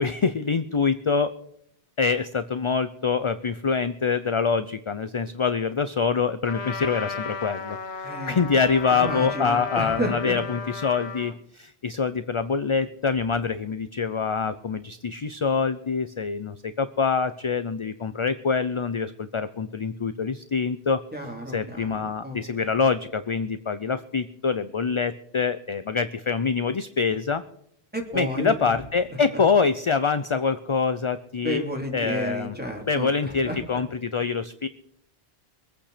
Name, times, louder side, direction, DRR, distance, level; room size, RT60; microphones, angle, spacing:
voice 1, 0.0-1.3 2.0-21.0 21.5-27.4 28.1-31.6 31.9-32.5 32.9-34.7, left 5 dB, 40° left, 12 dB, 0.5 m, -25 dB
Trumpet, 6.4-11.4, left 5 dB, 90° left, 1.5 m, -35 dB
voice 2, 8.0-8.4 8.9-10.4 21.1-22.7 27.9-28.7 29.1-29.4 31.4-33.8, equal, 10° right, 0 dB, 3.4 m, -32 dB
23.5 x 8.8 x 5.0 m, 0.71 s
omnidirectional pair, 1.1 m